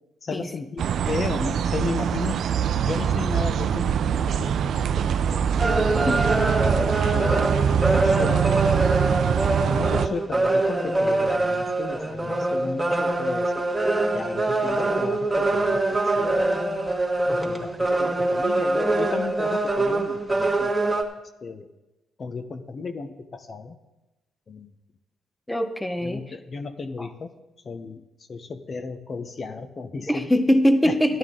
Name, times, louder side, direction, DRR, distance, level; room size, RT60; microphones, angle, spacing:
voice 1, 0.2-2.4 2.9-5.0 5.3-5.6 6.1-6.4 6.8-8.7 9.6-13.7 14.1-15.8 16.1-16.7 17.3-20.9 21.4-21.7 22.2-23.8 24.5-24.7 26.0-27.3 27.6-28.0 28.3-30.3 30.8-31.0, left 4 dB, 40° left, 8 dB, 0.8 m, -34 dB
Park Ambience, 0.8-10.1, right 8 dB, 65° right, 0.4 m, -23 dB
sound 1, 5.6-21.0, right 2 dB, 10° right, 1.4 m, -24 dB
voice 2, 25.5-26.2 27.0-27.1 30.1-31.2, equal, 5° left, 9 dB, 0.7 m, -22 dB
13.0 x 11.0 x 3.8 m, 1.0 s
cardioid pair, 90°, 0 cm